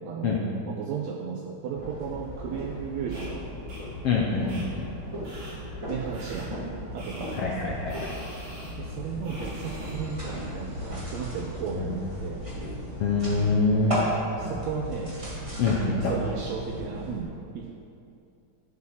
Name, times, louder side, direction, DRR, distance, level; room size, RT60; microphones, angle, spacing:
voice 1, 0.0-3.4 5.9-6.6 6.9-7.8 8.8-12.4 14.4-15.2 15.8-17.7, right 6 dB, 80° right, 1 dB, 1.5 m, -35 dB
sound 1, 1.8-17.2, equal, 15° right, 1.5 m, -36 dB
sound 2, 3.1-3.3 3.7-3.8 4.5-4.6 5.2-5.5 6.1-6.4 7.0-7.4 7.9-8.7 9.2-9.9, right 1 dB, 55° right, 3.9 m, -45 dB
voice 2, 4.0-4.9 7.4-8.2 11.8-11.9 13.0-14.0 15.6-16.1, left 4 dB, 70° left, -2 dB, 1.5 m, -25 dB
11.5 x 6.2 x 5.6 m, 2.6 s
omnidirectional pair, 3.7 m